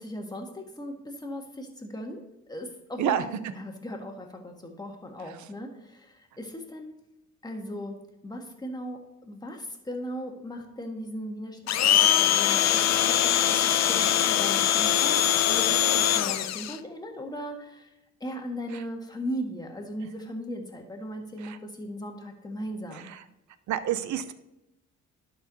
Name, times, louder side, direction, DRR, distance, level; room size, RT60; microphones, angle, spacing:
voice 1, 0.0-6.9 7.4-11.6 11.9-17.9 18.2-23.1, equal, 15° left, 2 dB, 1.6 m, -38 dB
Domestic sounds home sounds, 11.7-16.8, left 11 dB, 60° left, 0.5 m, -22 dB
voice 2, 23.7-24.3, right 10 dB, 70° right, 13 dB, 0.7 m, -28 dB
11.5 x 4.7 x 4.0 m, 0.91 s
cardioid pair, 90°, 30 cm